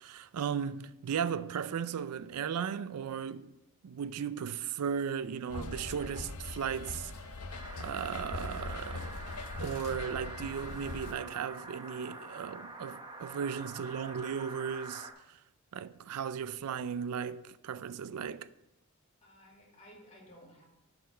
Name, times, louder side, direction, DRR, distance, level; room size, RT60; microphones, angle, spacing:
voice 1, 0.0-3.5 3.8-7.3 7.8-9.1 9.6-15.4 15.7-18.5, right 7 dB, 90° right, 0.4 m, -36 dB
sound 1, 5.5-11.1, left 3 dB, 85° left, 0.7 m, -41 dB
sound 2, 7.5-15.1, right 3 dB, 20° right, 0.8 m, -46 dB
voice 2, 19.2-20.6, equal, 30° left, 2.1 m, -56 dB
11.5 x 4.1 x 5.2 m
head